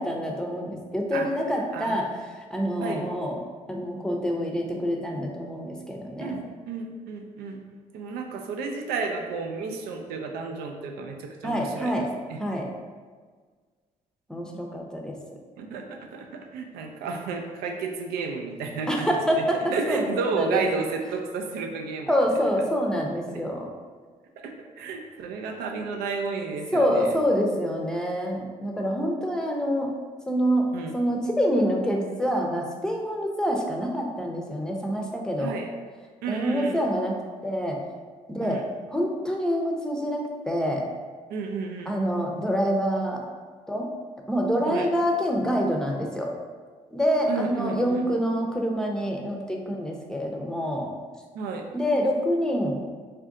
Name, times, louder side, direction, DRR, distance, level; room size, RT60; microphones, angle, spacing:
voice 1, 0.0-2.1 2.5-3.4 3.7-6.4 11.4-12.1 12.4-12.7 14.3-15.2 18.9-20.6 22.1-23.7 26.7-29.9 30.3-30.7 30.9-35.5 36.3-37.8 38.3-38.6 38.9-40.9 41.9-43.2 43.7-43.9 44.3-46.3 46.9-50.9 51.7-52.8, equal, 5° left, 0 dB, 0.6 m, -26 dB
voice 2, 1.7-2.1 2.8-3.0 6.2-7.6 7.9-12.0 12.3-12.4 15.6-19.4 19.7-22.1 22.6-22.7 23.3-23.4 24.4-27.2 30.7-30.9 35.4-35.7 36.2-36.8 38.4-38.6 41.3-41.9 44.6-44.9 47.3-48.1 51.3-51.6, right 4 dB, 80° right, 3 dB, 0.4 m, -32 dB
2.5 x 2.2 x 3.6 m, 1.5 s
supercardioid pair, 55°, 16 cm